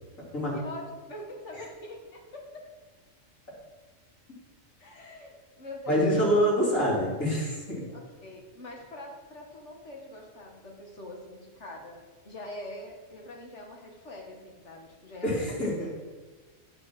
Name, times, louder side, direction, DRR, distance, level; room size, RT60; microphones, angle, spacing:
voice 1, 1.1-2.6 4.8-6.0 7.9-12.0 12.2-15.5, left 1 dB, 60° left, 0 dB, 1.9 m, -44 dB
voice 2, 5.9-7.8 15.2-15.9, equal, 85° left, -6 dB, 3.5 m, -26 dB
9.7 x 5.6 x 6.0 m, 1.3 s
omnidirectional pair, 1.3 m